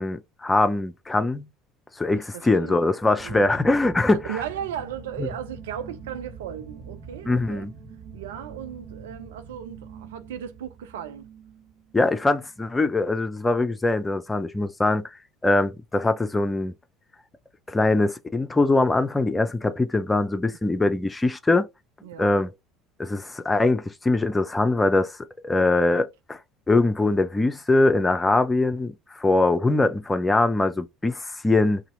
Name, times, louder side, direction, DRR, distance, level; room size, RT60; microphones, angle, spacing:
voice 1, 0.0-1.5 2.0-4.4 5.2-5.3 7.3-7.7 11.9-15.1 15.4-16.7 17.7-21.7 22.2-22.5 23.0-25.2 25.4-26.4 26.7-31.8, left 2 dB, 15° left, 0.6 m, -22 dB
voice 2, 2.1-2.8 3.2-3.5 4.3-7.7 8.1-11.3 22.0-22.3, right 9 dB, 70° right, 0.5 m, -36 dB
sound 1, 3.2-12.6, right 5 dB, 45° right, 1.8 m, -44 dB
2.8 x 2.7 x 3.8 m
figure-of-eight pair, 60°, 0 cm